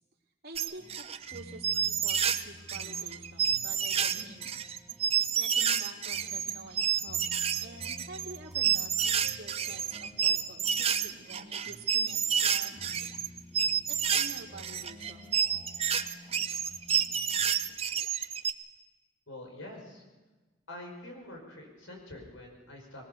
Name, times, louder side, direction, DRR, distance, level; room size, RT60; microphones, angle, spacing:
voice 1, 0.4-4.5 5.2-12.8 13.9-15.4, right 3 dB, 50° right, -1 dB, 3.3 m, -48 dB
sound 1, 0.6-2.4 2.7-18.5, right 8 dB, 30° right, 0.6 m, -29 dB
sound 2, 0.8-17.6, left 1 dB, 5° left, 4.8 m, -52 dB
voice 2, 19.3-20.0 20.7-23.1, left 1 dB, 85° left, 2 dB, 5.3 m, -46 dB
22.0 x 18.5 x 6.9 m, 1.2 s
head